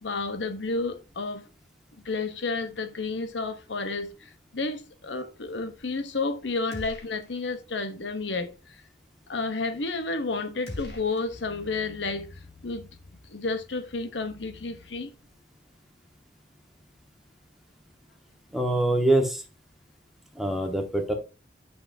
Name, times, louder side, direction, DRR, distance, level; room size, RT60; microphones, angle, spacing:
voice 1, 0.0-1.4 2.0-8.8 9.3-12.9 13.3-15.1, left 3 dB, 80° left, 0.9 m, -31 dB
sound 1, 6.7-7.6 7.9-8.0 10.7-12.0, left 1 dB, 60° left, 2.4 m, -42 dB
voice 2, 18.5-19.4 20.3-21.1, right 1 dB, ahead, 1.3 m, -24 dB
9.6 x 6.0 x 2.6 m
head